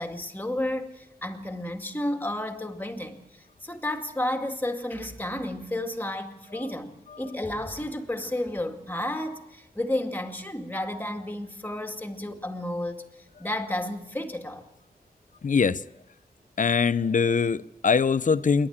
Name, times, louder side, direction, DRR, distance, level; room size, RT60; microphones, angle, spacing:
voice 1, 0.0-3.2 3.6-13.0 13.4-14.7, left 1 dB, 10° left, 2.1 m, -32 dB
voice 2, 15.4-15.8 16.6-18.7, left 5 dB, 50° left, 0.7 m, -22 dB
27.0 x 11.5 x 8.7 m
wide cardioid pair, 110°, 17 cm